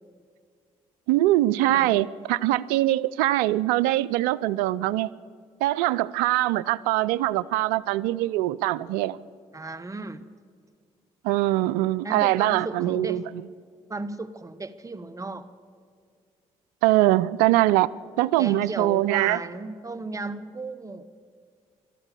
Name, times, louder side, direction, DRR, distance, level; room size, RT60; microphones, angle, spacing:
voice 1, 1.1-5.1 5.6-9.2 11.2-13.4 16.8-17.9 18.2-19.4, right 16 dB, 85° right, 18 dB, 0.4 m, -23 dB
voice 2, 1.6-2.0 9.5-10.2 12.0-13.3 13.9-15.5 18.4-21.1, right 3 dB, 20° right, 12 dB, 1.1 m, -35 dB
13.5 x 12.5 x 8.3 m, 2.1 s
hypercardioid pair, 55°, 15 cm